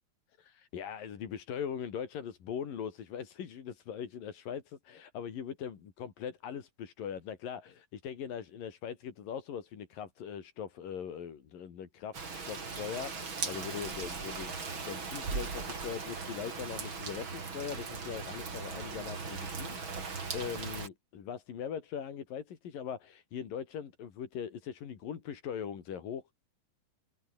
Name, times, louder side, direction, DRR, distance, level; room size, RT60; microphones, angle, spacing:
voice 1, 0.4-26.3, left 8 dB, 90° left, 4.5 m, -41 dB
Rain, 12.1-20.9, right 4 dB, 35° right, 4.1 m, -39 dB
omnidirectional pair, 3.8 m